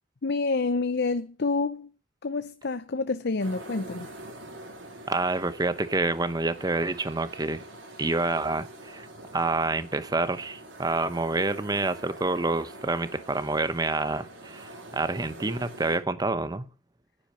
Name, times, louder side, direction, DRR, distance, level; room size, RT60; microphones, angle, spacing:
voice 1, 0.2-1.9 2.2-4.1, left 3 dB, 60° left, 0.7 m, -28 dB
sound 1, 3.4-16.0, right 1 dB, 85° right, 4.2 m, -45 dB
voice 2, 5.1-7.6 8.0-9.1 9.3-16.7, right 2 dB, 20° right, 0.9 m, -28 dB
10.5 x 9.7 x 6.7 m
head